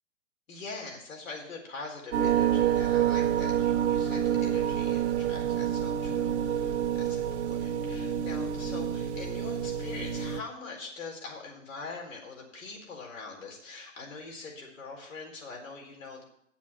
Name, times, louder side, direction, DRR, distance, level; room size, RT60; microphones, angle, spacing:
voice 1, 0.5-16.2, left 3 dB, 90° left, -1 dB, 4.4 m, -43 dB
sound 1, 2.1-10.4, right 9 dB, 60° right, 1.3 m, -28 dB
9.0 x 7.2 x 7.3 m, 0.73 s
hypercardioid pair, 160°, 38 cm